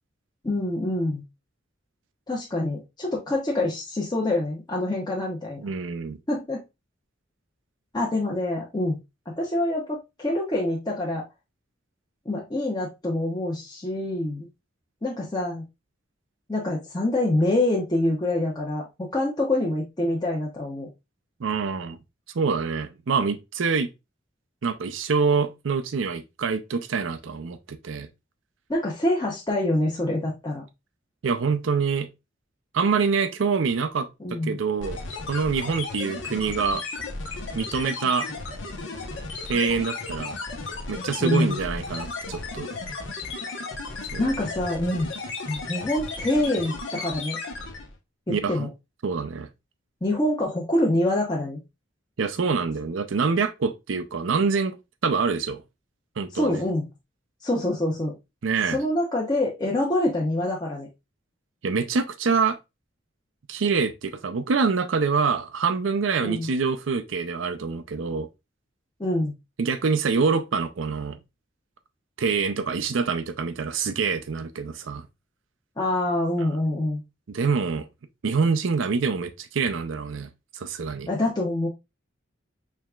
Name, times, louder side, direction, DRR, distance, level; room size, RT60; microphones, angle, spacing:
voice 1, 0.4-1.2 2.3-5.6 6.3-6.6 7.9-9.0 9.3-11.2 12.3-14.5 15.0-15.7 16.5-20.9 28.7-30.6 34.2-34.6 41.2-41.6 44.2-45.1 45.5-47.4 48.3-48.7 50.0-51.6 56.3-56.9 57.4-58.1 58.7-60.9 66.2-66.5 69.0-69.3 75.8-77.0 81.1-81.7, left 1 dB, 20° left, 0.8 m, -26 dB
voice 2, 5.6-6.2 21.4-22.0 22.3-23.9 24.6-28.1 31.2-32.1 32.7-34.1 34.4-35.0 35.3-36.8 37.5-38.3 39.5-40.4 40.9-42.7 44.1-44.2 48.3-48.7 49.0-49.5 52.2-54.8 55.0-55.6 56.2-56.6 58.4-58.8 61.6-62.6 63.5-68.3 69.6-71.2 72.2-75.1 77.3-77.9 78.2-81.1, right 5 dB, 90° right, 0.5 m, -25 dB
sound 1, 34.8-48.0, left 3 dB, 80° left, 1.0 m, -34 dB
4.6 x 3.4 x 2.3 m
head